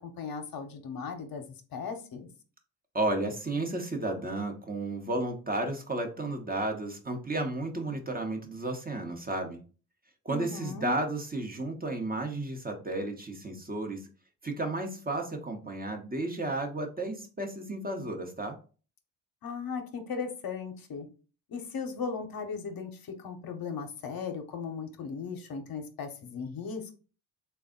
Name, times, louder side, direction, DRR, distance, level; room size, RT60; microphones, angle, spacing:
voice 1, 0.0-1.4 1.7-2.3 10.3-11.0 19.4-21.1 21.5-26.9, left 5 dB, 60° left, 5 dB, 0.8 m, -37 dB
voice 2, 2.9-9.6 10.2-14.1 14.4-18.6, right 2 dB, 20° right, 3 dB, 0.9 m, -33 dB
3.3 x 2.3 x 3.7 m, 0.35 s
cardioid pair, 75°, 41 cm